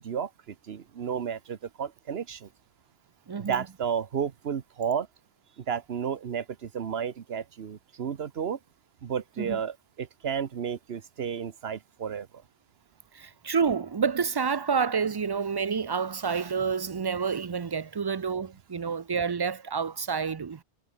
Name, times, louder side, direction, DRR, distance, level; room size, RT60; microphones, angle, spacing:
voice 1, 0.0-2.5 3.4-5.1 5.6-8.6 9.0-12.3, right 7 dB, 80° right, 1.2 m, -32 dB
voice 2, 3.3-3.6 9.4-9.6 13.1-20.6, right 6 dB, 40° right, 0.3 m, -29 dB
omnidirectional pair, 1.0 m